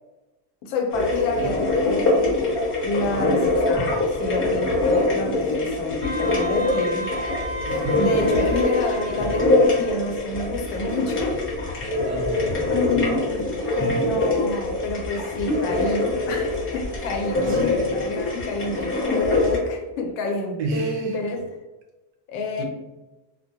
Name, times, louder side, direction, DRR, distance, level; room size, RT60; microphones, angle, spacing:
voice 1, 0.6-7.3 8.0-11.4 12.7-21.5 22.3-22.6, left 2 dB, 75° left, 3 dB, 0.7 m, -28 dB
sound 1, 0.9-19.6, left 2 dB, 25° left, 0.9 m, -24 dB
Wind instrument woodwind instrument, 6.0-10.2, right 1 dB, 25° right, 0.4 m, -33 dB
voice 2, 7.7-8.1 12.1-12.7 17.5-18.0 20.6-21.2 22.6-22.7, right 2 dB, 55° right, 2 dB, 0.7 m, -31 dB
2.2 x 2.0 x 2.8 m, 1.1 s
cardioid pair, 115°, 50 cm